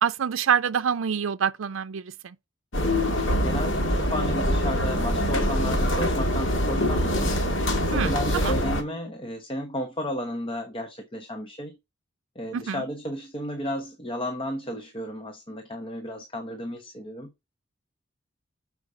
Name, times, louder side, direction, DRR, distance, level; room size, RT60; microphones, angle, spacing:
voice 1, 0.0-2.4 7.9-8.5 12.5-12.8, right 7 dB, 85° right, 0.5 m, -26 dB
sound 1, 2.7-8.8, equal, 75° left, 1.9 m, -24 dB
voice 2, 3.4-7.3 7.9-11.8 12.3-17.3, equal, 25° left, 1.0 m, -33 dB
7.0 x 4.8 x 4.8 m
head